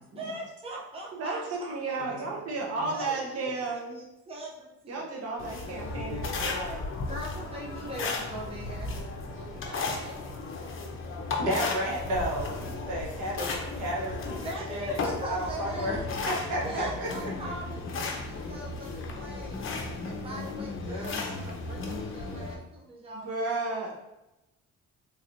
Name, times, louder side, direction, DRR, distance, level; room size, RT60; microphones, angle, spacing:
voice 1, 0.1-2.0 2.9-5.1 7.0-10.3 14.3-16.2 16.6-19.6 20.0-23.5, right 1 dB, 20° right, -3 dB, 0.7 m, -41 dB
voice 2, 1.1-4.0 4.9-6.8 23.1-24.0, right 3 dB, 55° right, -1 dB, 0.9 m, -33 dB
sound 1, 5.4-22.5, left 3 dB, 45° left, 0.6 m, -35 dB
voice 3, 11.4-14.4 14.7-16.0 16.3-17.3 20.8-21.5, equal, 80° right, -4 dB, 1.1 m, -32 dB
3.1 x 2.8 x 2.6 m, 0.95 s
cardioid pair, 90°, 30 cm